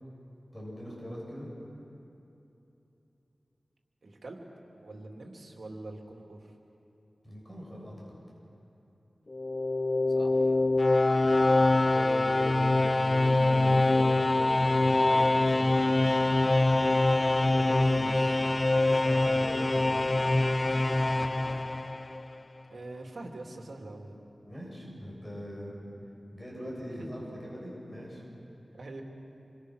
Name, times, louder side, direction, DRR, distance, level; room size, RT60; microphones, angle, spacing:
voice 1, 0.5-1.5 7.2-7.9 11.9-16.2 17.3-18.2 18.8-20.1 24.5-25.8 26.3-28.2, equal, 10° left, -4 dB, 7.2 m, -40 dB
voice 2, 4.0-4.5 4.8-6.5 10.2-10.6 17.8-18.3 22.7-24.2 26.9-27.2 28.7-29.0, right 2 dB, 75° right, 1 dB, 2.7 m, -44 dB
sound 1, 9.3-22.3, left 2 dB, 35° left, 0.5 m, -24 dB
28.0 x 23.0 x 6.5 m, 2.9 s
wide cardioid pair, 90°, 0 cm